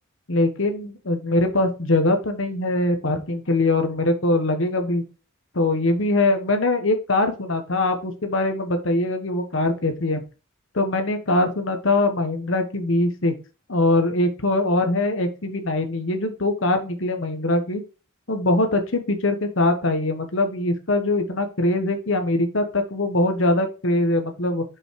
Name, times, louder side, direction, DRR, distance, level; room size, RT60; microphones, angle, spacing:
voice 1, 0.3-5.0 5.5-10.2 10.7-13.3 13.7-17.8 18.3-24.6, left 2 dB, 70° left, 6 dB, 1.3 m, -22 dB
5.7 x 5.5 x 4.7 m, 0.33 s
head